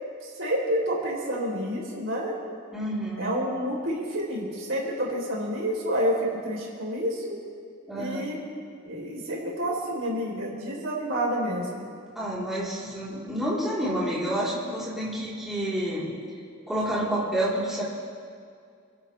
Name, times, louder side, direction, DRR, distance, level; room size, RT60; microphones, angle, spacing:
voice 1, 0.4-2.3 3.2-6.2 6.4-7.3 7.9-8.4 8.8-11.8, equal, 70° right, -3 dB, 4.2 m, -29 dB
voice 2, 2.7-3.3 7.9-8.2 12.1-16.1 16.7-17.8, right 1 dB, ahead, -9 dB, 4.2 m, -29 dB
28.5 x 12.0 x 3.5 m, 2.2 s
head